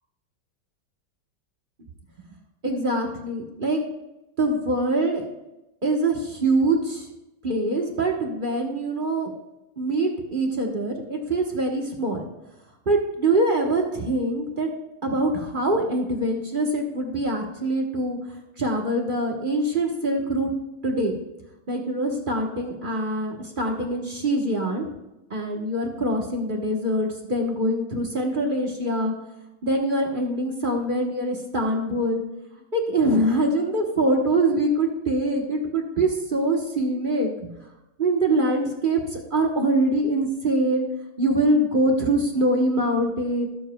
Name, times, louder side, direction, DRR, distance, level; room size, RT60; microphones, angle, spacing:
voice 1, 2.6-3.8 4.4-5.2 5.8-7.1 7.4-9.3 9.8-12.3 12.9-14.7 15.0-18.2 18.6-20.5 20.8-21.2 21.7-24.9 25.3-29.1 29.6-32.2 32.7-37.5 38.0-40.9 41.2-43.5, right 1 dB, 35° right, 1 dB, 1.1 m, -24 dB
18.0 x 7.2 x 2.3 m, 0.97 s
omnidirectional pair, 1.9 m